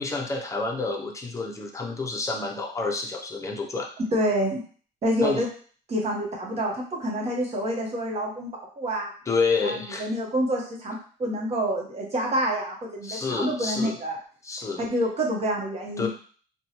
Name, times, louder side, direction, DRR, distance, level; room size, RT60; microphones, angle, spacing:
voice 1, 0.0-3.9 5.2-5.4 9.3-10.1 13.0-14.0 14.4-14.8 16.0-16.1, left 4 dB, 20° left, 1 dB, 0.6 m, -29 dB
voice 2, 4.1-4.6 5.0-5.5 5.9-8.5 8.8-9.1 9.6-14.2 14.8-16.1, equal, 40° right, -1 dB, 1.0 m, -27 dB
2.6 x 2.2 x 2.9 m, 0.43 s
cardioid pair, 110°, 17 cm